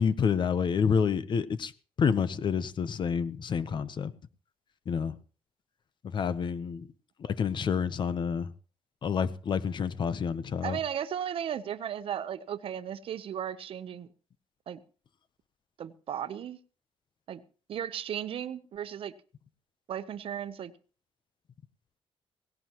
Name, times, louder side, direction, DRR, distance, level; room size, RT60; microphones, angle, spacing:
voice 1, 0.0-1.7 2.0-4.1 4.9-5.1 6.1-6.9 7.2-8.5 9.0-10.8, left 6 dB, 50° left, 0.9 m, -28 dB
voice 2, 10.6-14.1 14.7-14.8 15.8-16.6 17.3-17.4 17.7-19.1 19.9-20.7, right 9 dB, 65° right, 0.9 m, -35 dB
17.5 x 17.0 x 3.1 m
cardioid pair, 125°, 10 cm